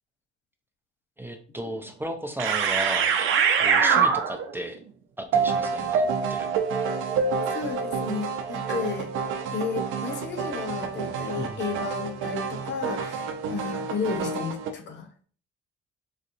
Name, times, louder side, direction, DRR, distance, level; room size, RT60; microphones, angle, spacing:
voice 1, 1.2-3.1 3.6-4.8 5.2-6.5 11.3-11.6, right 1 dB, 10° right, 5 dB, 0.5 m, -35 dB
sound 1, 1.6-1.7 2.4-4.6 5.3-14.7, right 6 dB, 85° right, 0.5 m, -26 dB
voice 2, 7.5-9.1 9.5-15.3, left 5 dB, 60° left, 4 dB, 0.8 m, -33 dB
4.1 x 2.6 x 2.6 m, 0.44 s
cardioid pair, 90°, 20 cm